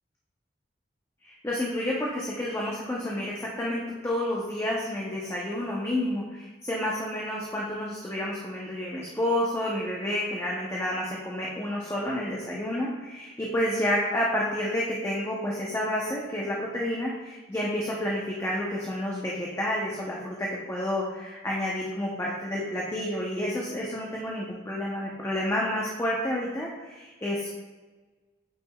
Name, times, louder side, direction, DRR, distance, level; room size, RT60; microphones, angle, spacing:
voice 1, 1.2-27.6, left 1 dB, 15° left, -5 dB, 0.7 m, -30 dB
8.4 x 5.1 x 2.3 m, 1.3 s
head